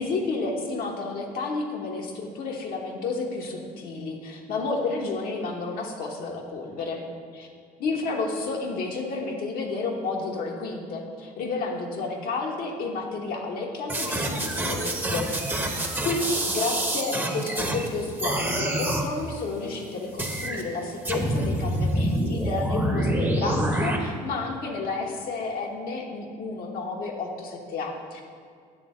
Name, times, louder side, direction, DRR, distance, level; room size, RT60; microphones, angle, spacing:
voice 1, 0.0-7.0 7.3-7.5 7.8-15.7 16.0-28.2, left 3 dB, 70° left, 1 dB, 1.1 m, -31 dB
sound 1, 13.9-17.9 18.2-19.1 20.2-20.6 21.0-24.0, right 1 dB, 15° right, 0.9 m, -27 dB
7.7 x 3.4 x 6.3 m, 2.2 s
supercardioid pair, 75°, 16 cm